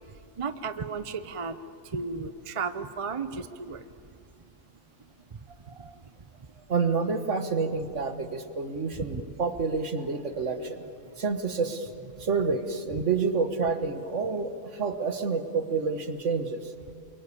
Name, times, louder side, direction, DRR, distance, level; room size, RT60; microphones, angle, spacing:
voice 1, 0.4-1.6 1.9-3.8 5.8-5.9 8.9-9.2, right 5 dB, 30° right, 11 dB, 0.6 m, -34 dB
voice 2, 6.7-10.8 11.2-11.9 12.2-16.7, right 4 dB, 55° right, 8 dB, 1.7 m, -28 dB
29.0 x 23.0 x 8.4 m, 2.5 s
omnidirectional pair, 1.5 m